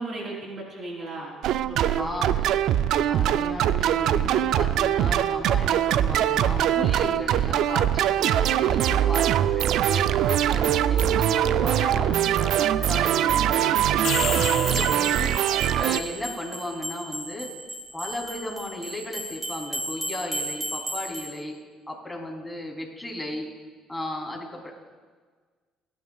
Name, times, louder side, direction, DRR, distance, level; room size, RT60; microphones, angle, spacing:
voice 1, 0.0-1.3 1.6-2.5 14.3-15.0, right 2 dB, 50° right, -2 dB, 3.8 m, -37 dB
sound 1, 1.4-16.0, right 11 dB, 70° right, 0.4 m, -22 dB
voice 2, 2.0-2.5 3.1-13.6 14.5-15.3 15.7-17.5 17.9-21.5 21.9-23.5 23.9-24.7, left 1 dB, 5° left, -2 dB, 3.3 m, -35 dB
sound 2, 13.8-15.8, left 9 dB, 60° left, 0.6 m, -32 dB
sound 3, 14.2-21.3, right 1 dB, 10° right, 2.8 m, -35 dB
23.5 x 9.6 x 2.4 m, 1.5 s
supercardioid pair, 70°, 0 cm